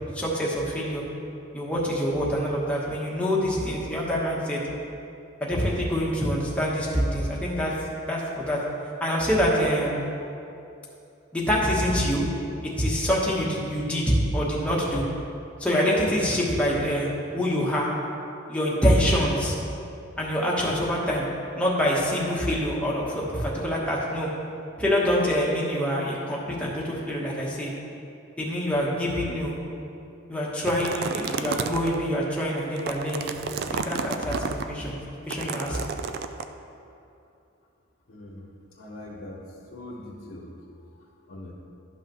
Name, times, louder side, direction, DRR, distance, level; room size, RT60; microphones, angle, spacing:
voice 1, 0.1-1.0 1.5-4.6 5.4-7.7 8.1-8.6 9.0-10.0 11.3-12.2 12.8-15.0 15.6-17.1 17.3-17.9 18.5-19.5 20.2-21.3 21.6-24.3 24.8-27.7 28.4-29.6 30.3-33.3 33.7-35.0 35.3-35.8, equal, 5° left, -5 dB, 1.1 m, -25 dB
sound 1, 30.6-32.0 32.6-34.6 35.3-36.4, right 5 dB, 45° right, 0.3 m, -31 dB
voice 2, 38.1-41.5, left 1 dB, 80° left, -4 dB, 1.0 m, -43 dB
11.5 x 5.7 x 3.0 m, 2.6 s
head